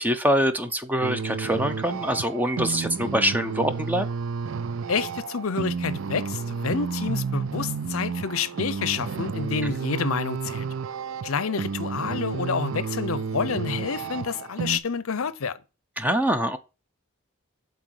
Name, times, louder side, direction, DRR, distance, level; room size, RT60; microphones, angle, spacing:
voice 1, 0.0-4.1 16.0-16.6, equal, 10° right, 0.7 m, -24 dB
sound 1, 1.0-14.8, right 5 dB, 65° right, 0.5 m, -31 dB
voice 2, 4.9-10.7 11.2-15.6, left 6 dB, 70° left, 0.6 m, -28 dB
7.9 x 4.0 x 6.4 m
head